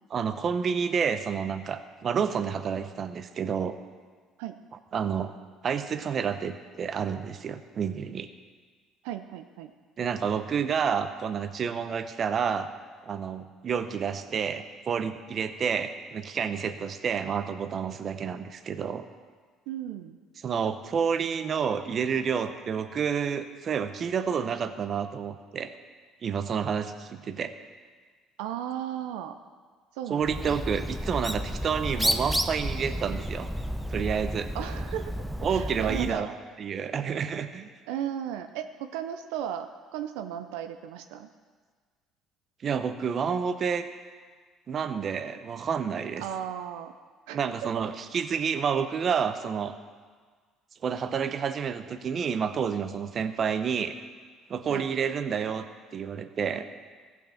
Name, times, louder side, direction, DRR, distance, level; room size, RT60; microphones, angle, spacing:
voice 1, 0.1-3.8 4.9-5.3 5.6-8.3 10.0-12.7 13.0-19.0 20.4-25.7 26.2-27.5 30.1-33.5 33.9-34.5 35.4-36.3 36.6-37.7 42.6-43.9 44.7-46.2 47.3-49.7 50.8-54.0 54.5-55.7 55.9-56.7, right 7 dB, 45° right, 10 dB, 0.8 m, -29 dB
voice 2, 9.0-9.7 19.7-20.2 28.4-29.4 29.9-30.6 34.5-35.1 35.5-36.3 37.9-41.3 46.2-46.9 47.3-47.4 54.7-54.9, right 10 dB, 90° right, 8 dB, 0.6 m, -35 dB
Bird, 30.2-36.2, equal, ahead, 0.7 m, -31 dB
15.0 x 6.0 x 7.1 m, 1.5 s
supercardioid pair, 90°, 0 cm